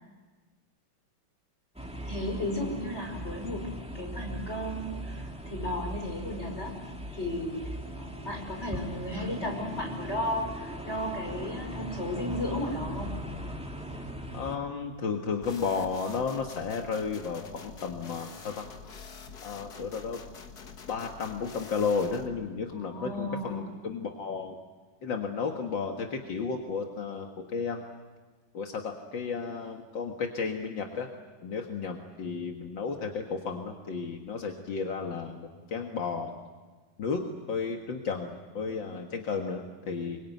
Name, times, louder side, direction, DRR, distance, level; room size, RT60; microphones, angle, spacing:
sound 1, 1.8-14.6, right 1 dB, 5° right, 2.6 m, -39 dB
voice 1, 2.0-3.7 3.9-6.8 7.1-7.7 8.0-13.3 22.7-23.7, left 1 dB, 35° left, 2 dB, 6.1 m, -34 dB
voice 2, 14.3-18.7 19.4-20.2 20.9-24.6 25.0-27.8 28.5-31.1 31.4-36.3 37.0-37.2 37.5-40.2, left 5 dB, 75° left, 2 dB, 2.4 m, -33 dB
sound 2, 15.4-22.3, left 5 dB, 55° left, 2.1 m, -46 dB
26.5 x 23.5 x 9.4 m, 1.3 s
omnidirectional pair, 2.1 m